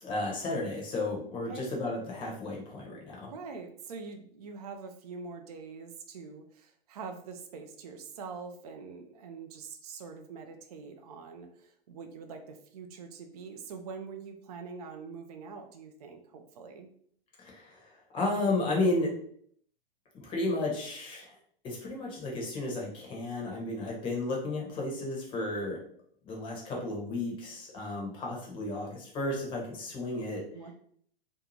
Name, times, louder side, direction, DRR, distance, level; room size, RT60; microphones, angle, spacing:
voice 1, 0.0-3.3 17.4-19.1 20.1-21.4 21.6-25.8 26.2-30.4, left 2 dB, 15° left, -2 dB, 0.7 m, -33 dB
voice 2, 3.3-16.9 30.5-30.7, right 5 dB, 40° right, 6 dB, 0.4 m, -44 dB
2.6 x 2.4 x 3.0 m, 0.62 s
figure-of-eight pair, 110°, 31 cm